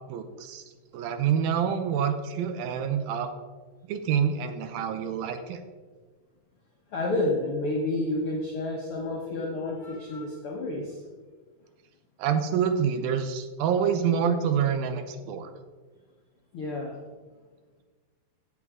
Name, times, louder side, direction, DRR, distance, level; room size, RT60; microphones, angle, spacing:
voice 1, 0.1-0.6 0.9-3.3 3.9-5.6 12.2-15.5, right 7 dB, 75° right, 8 dB, 2.4 m, -27 dB
voice 2, 6.9-11.0 16.5-17.0, left 2 dB, 65° left, -2 dB, 1.3 m, -30 dB
15.5 x 8.5 x 3.7 m, 1.4 s
omnidirectional pair, 4.5 m